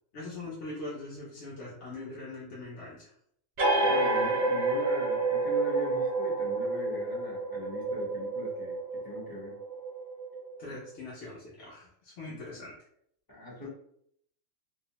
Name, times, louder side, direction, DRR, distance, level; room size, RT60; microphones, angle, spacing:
voice 1, 0.1-3.1 10.6-12.8, left 2 dB, 65° left, -6 dB, 0.9 m, -42 dB
sound 1, 3.6-10.8, right 3 dB, 55° right, 0.6 m, -29 dB
voice 2, 3.8-9.6 10.6-10.7 13.3-13.7, left 1 dB, 20° left, -5 dB, 0.6 m, -41 dB
2.6 x 2.0 x 2.8 m, 0.69 s
omnidirectional pair, 1.3 m